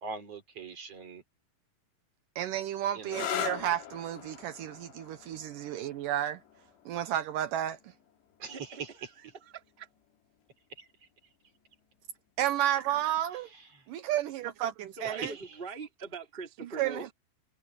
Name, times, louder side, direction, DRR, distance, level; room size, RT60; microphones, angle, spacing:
voice 1, 0.0-1.2 2.9-3.3 8.4-8.6 10.8-10.9 15.1-15.3, right 4 dB, 35° right, 4.3 m, -41 dB
voice 2, 2.4-6.4 6.9-7.8 12.4-13.5 13.9-15.3 16.8-17.0, right 12 dB, 80° right, 1.9 m, -31 dB
sound 1, 3.0-10.5 11.5-12.0 15.5-15.9, left 11 dB, 70° left, 4.7 m, -42 dB
voice 3, 8.5-9.9 14.9-17.1, right 4 dB, 15° right, 2.1 m, -43 dB
omnidirectional pair, 5.1 m